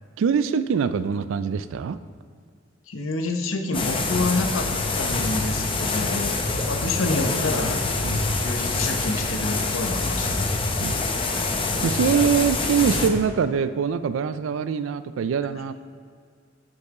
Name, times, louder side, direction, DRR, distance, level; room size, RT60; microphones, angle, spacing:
voice 1, 0.2-2.0 6.1-6.2 8.0-8.3 10.8-10.9 11.8-15.7, right 6 dB, 70° right, 13 dB, 0.3 m, -23 dB
voice 2, 2.9-4.7 5.0-7.8 8.4-10.5, left 2 dB, 80° left, 5 dB, 0.7 m, -28 dB
sound 1, 3.7-13.1, left 3 dB, 25° left, 0.6 m, -25 dB
Water / Liquid, 5.3-7.8 8.9-9.9 11.4-12.4, equal, 15° right, 0.7 m, -39 dB
sound 2, 6.2-11.8, right 2 dB, 50° right, 1.1 m, -44 dB
6.6 x 5.5 x 4.7 m, 2.1 s
head